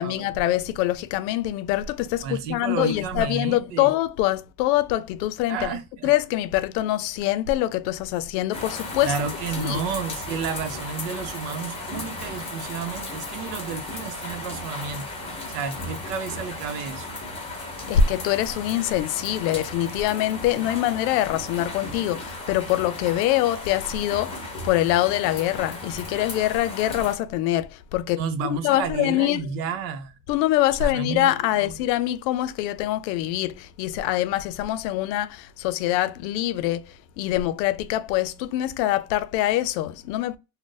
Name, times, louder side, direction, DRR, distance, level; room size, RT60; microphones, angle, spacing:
voice 1, 0.0-9.2 9.6-9.8 17.9-29.5 30.3-40.4, left 13 dB, 90° left, 0.6 m, -24 dB
voice 2, 2.2-3.9 5.5-6.1 9.0-15.1 15.5-17.1 28.1-30.1 30.8-31.3 31.6-31.7, right 6 dB, 80° right, 0.8 m, -31 dB
sound 1, 8.5-27.2, left 2 dB, 10° left, 0.8 m, -35 dB
2.6 x 2.1 x 3.7 m
cardioid pair, 160°, 49 cm